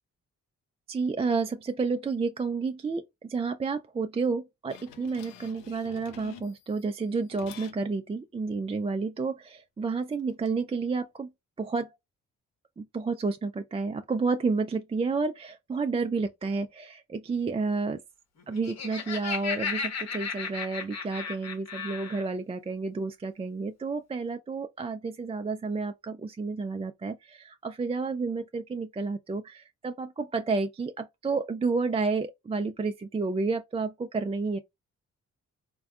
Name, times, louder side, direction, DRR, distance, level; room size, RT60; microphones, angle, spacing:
voice 1, 0.9-11.3 11.6-12.0 12.8-18.0 18.5-34.6, right 4 dB, 20° right, 0.4 m, -30 dB
sound 1, 4.7-6.8 7.3-7.8 10.0-10.5, left 8 dB, 75° left, 0.6 m, -49 dB
Laughter, 18.4-22.3, left 5 dB, 50° left, 1.0 m, -35 dB
3.3 x 2.2 x 2.3 m
hypercardioid pair, 45°, 34 cm